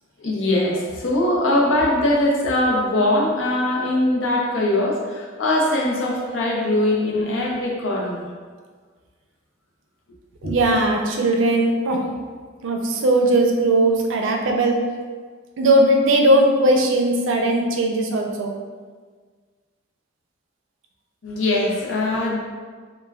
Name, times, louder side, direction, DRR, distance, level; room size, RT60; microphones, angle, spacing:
voice 1, 0.2-8.3 10.4-10.6 21.2-22.4, left 1 dB, 80° left, -2 dB, 0.6 m, -21 dB
voice 2, 10.4-12.1 12.6-14.8 15.6-18.5, right 1 dB, 75° right, 2 dB, 0.4 m, -18 dB
2.3 x 2.1 x 3.3 m, 1.5 s
head